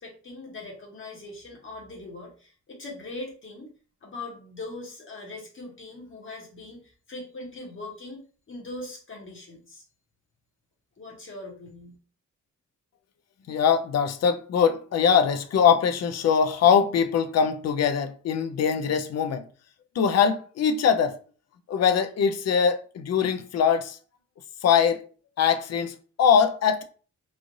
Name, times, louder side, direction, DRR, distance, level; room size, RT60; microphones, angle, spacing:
voice 1, 0.0-3.7 4.0-8.2 8.5-9.8 11.0-12.0, left 2 dB, 40° left, 0.9 m, -41 dB
voice 2, 13.5-19.4 20.0-21.2 21.7-24.0 24.6-25.0 25.4-26.8, left 7 dB, 55° left, 0.5 m, -22 dB
3.2 x 2.4 x 2.6 m
cardioid pair, 115°, 31 cm